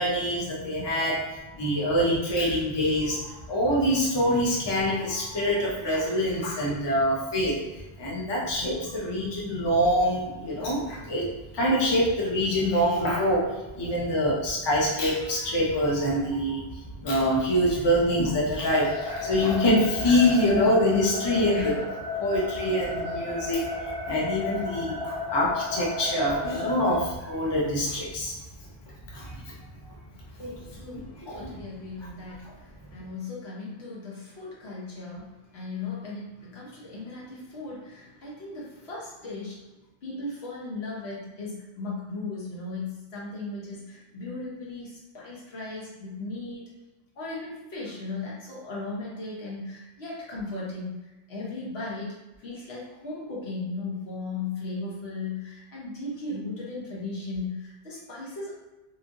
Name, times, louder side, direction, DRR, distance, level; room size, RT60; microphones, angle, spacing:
voice 1, 0.0-7.6 8.0-11.3 11.5-21.9 22.2-28.3 29.1-29.5 29.9-30.0 30.4-30.8 31.2-31.5, equal, 30° left, -5 dB, 0.6 m, -25 dB
sound 1, 18.7-26.9, left 3 dB, 50° left, 1.0 m, -34 dB
voice 2, 30.5-39.6 40.0-46.7 47.2-58.5, left 3 dB, 90° left, -6 dB, 1.2 m, -37 dB
2.8 x 2.4 x 2.5 m, 1.1 s
omnidirectional pair, 1.0 m